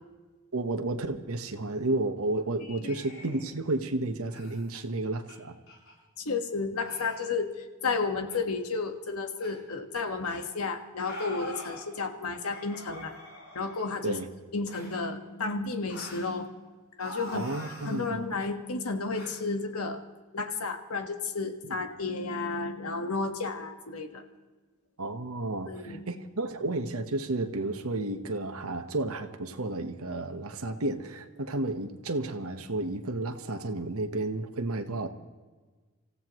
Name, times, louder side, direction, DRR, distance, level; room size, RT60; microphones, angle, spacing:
voice 1, 0.5-5.5 14.0-14.3 17.3-18.2 21.6-21.8 25.0-35.1, right 2 dB, 80° right, 6 dB, 1.2 m, -32 dB
sound 1, 2.8-3.5 4.3-4.6 5.3-5.4 5.7-5.9 6.8-7.3 8.3-8.4 9.4-9.5 10.2-10.4 11.0-11.8 12.5-14.0 14.7-15.0 15.9-16.3 17.0-18.0 19.1-19.3, left 1 dB, 65° left, 6.7 m, -44 dB
voice 2, 6.2-13.1 13.5-14.2 14.5-16.5 17.0-20.0 20.3-24.2 25.7-26.1, left 4 dB, 90° left, 6 dB, 1.5 m, -32 dB
27.0 x 15.5 x 3.1 m, 1.3 s
head